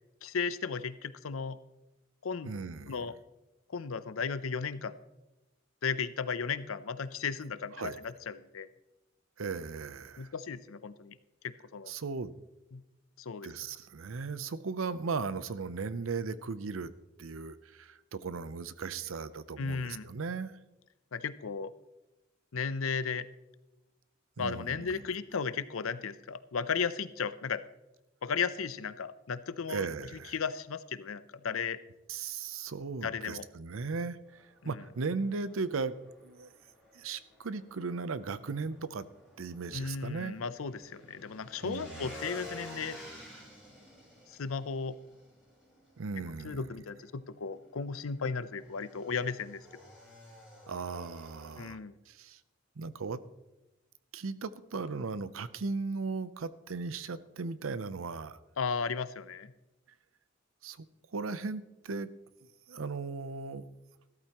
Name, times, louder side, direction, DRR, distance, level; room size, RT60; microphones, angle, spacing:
voice 1, 0.2-1.6 2.2-2.5 2.9-3.1 3.7-5.0 5.8-8.7 10.2-11.2 11.4-11.9 12.7-12.8 13.2-13.5 19.6-20.1 21.1-21.7 22.5-23.3 24.4-27.6 28.2-29.9 30.1-31.8 33.0-33.5 34.8-34.9 39.7-43.0 44.3-45.0 46.4-49.6 51.6-52.0 58.6-59.5, left 5 dB, 85° left, 15 dB, 0.6 m, -35 dB
voice 2, 2.5-3.0 7.8-8.0 9.4-10.3 11.9-12.3 13.4-16.9 17.2-20.5 24.4-25.0 29.7-30.3 32.1-35.9 36.2-36.5 36.9-39.0 39.4-40.3 41.6-42.1 46.0-46.6 50.7-51.8 52.1-52.4 52.8-53.2 54.1-58.4 60.6-60.9 61.1-62.1 62.7-63.6, right 4 dB, 80° right, 15 dB, 0.6 m, -37 dB
Motorcycle / Engine, 34.3-51.7, left 1 dB, 5° right, 5.0 m, -52 dB
14.5 x 13.0 x 3.0 m, 1.0 s
head